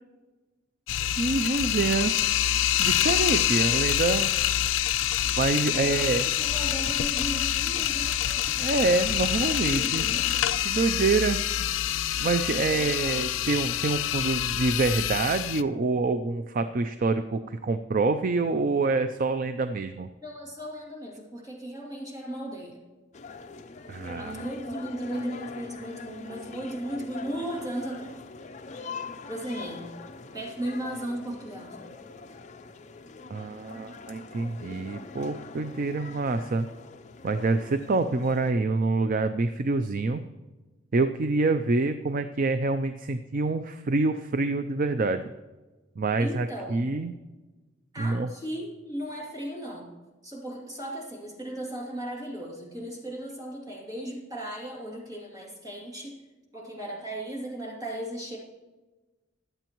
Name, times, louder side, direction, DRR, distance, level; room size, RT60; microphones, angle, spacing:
sound 1, 0.9-15.6, left 11 dB, 85° left, 0.4 m, -26 dB
voice 1, 1.2-2.1 2.8-4.3 5.4-6.2 8.5-10.1 10.6-11.4 12.2-20.1 23.9-24.3 33.3-36.7 37.2-40.2 40.9-45.3 46.0-47.1 48.0-48.3, right 3 dB, 45° right, 9 dB, 0.4 m, -26 dB
sound 2, 5.0-10.6, left 1 dB, 5° left, 0.8 m, -46 dB
voice 2, 5.7-8.5 9.6-10.4 12.7-13.3 20.2-22.8 24.1-28.2 29.3-30.0 30.3-31.9 46.2-46.9 47.9-49.9 50.2-56.2 56.5-58.4, right 1 dB, 20° right, -3 dB, 2.7 m, -36 dB
sound 3, 23.1-38.5, left 4 dB, 40° left, 0.6 m, -43 dB
22.0 x 8.0 x 3.0 m, 1.2 s
head